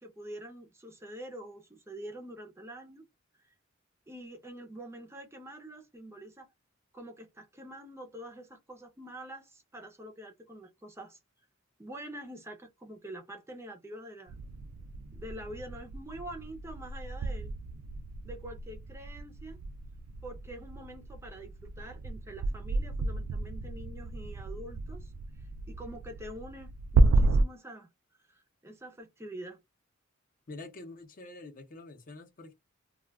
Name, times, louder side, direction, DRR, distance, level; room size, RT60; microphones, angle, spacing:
voice 1, 0.0-3.1 3.4-3.5 4.1-6.5 6.9-11.2 11.8-14.3 15.1-17.5 18.2-19.6 20.2-25.1 25.4-27.9 28.2-29.6, right 1 dB, 10° right, 0.5 m, -46 dB
sound 1, 14.3-27.4, right 2 dB, 80° right, 0.3 m, -32 dB
voice 2, 30.5-32.5, left 2 dB, 40° left, 0.6 m, -46 dB
2.2 x 2.2 x 3.3 m
head